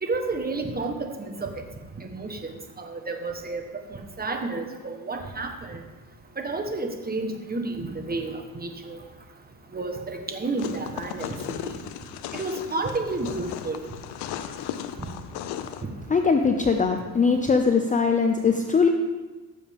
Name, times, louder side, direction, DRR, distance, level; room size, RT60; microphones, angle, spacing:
voice 1, 0.0-1.5 2.0-2.5 2.8-3.6 3.9-5.8 6.4-9.0 9.7-11.7 12.3-13.9, right 3 dB, 25° right, 4 dB, 1.4 m, -31 dB
sound 1, 10.6-15.8, left 10 dB, 90° left, 0.7 m, -36 dB
voice 2, 16.1-18.9, left 5 dB, 20° left, 5 dB, 0.6 m, -21 dB
15.5 x 7.0 x 3.6 m, 1.3 s
cardioid pair, 105°, 38 cm